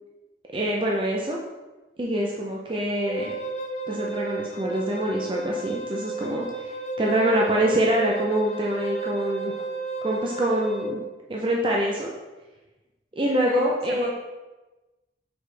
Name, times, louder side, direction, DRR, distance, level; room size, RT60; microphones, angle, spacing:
voice 1, 0.5-1.4 2.0-3.3 3.9-6.7 7.0-9.5 10.0-11.0 11.3-12.1 13.2-14.1, right 1 dB, 30° right, -2 dB, 0.6 m, -25 dB
Wind instrument woodwind instrument, 3.1-10.9, right 3 dB, 40° left, 0.6 m, -32 dB
voice 2, 13.4-14.1, right 2 dB, 55° right, 2 dB, 0.9 m, -39 dB
6.2 x 4.9 x 3.4 m, 1.1 s
head